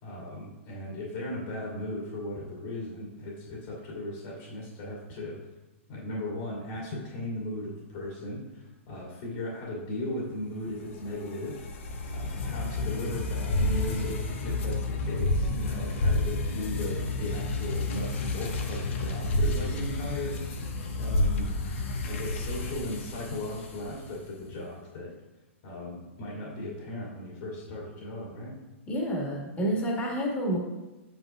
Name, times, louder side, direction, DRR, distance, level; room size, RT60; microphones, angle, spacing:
voice 1, 0.0-5.4 5.9-11.7 12.1-20.7 21.0-21.5 22.0-25.2 25.6-28.6, left 1 dB, 50° left, -5 dB, 2.4 m, -37 dB
sound 1, 10.8-24.2, left 2 dB, 70° left, 1.3 m, -30 dB
voice 2, 28.9-30.6, equal, 20° left, -2 dB, 1.9 m, -29 dB
8.9 x 7.7 x 2.4 m, 1.1 s
hypercardioid pair, 145°, 7 cm